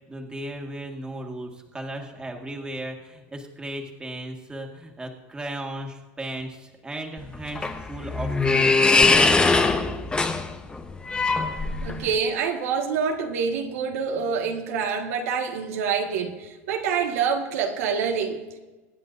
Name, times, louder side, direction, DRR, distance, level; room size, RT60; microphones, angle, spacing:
voice 1, 0.1-8.8, right 1 dB, 10° right, 1 dB, 1.8 m, -36 dB
sound 1, 7.2-12.1, left 3 dB, 15° left, 0.9 m, -21 dB
voice 2, 11.8-18.6, right 6 dB, 90° right, 1 dB, 1.8 m, -26 dB
24.5 x 9.8 x 2.7 m, 1.2 s
supercardioid pair, 130°, 7 cm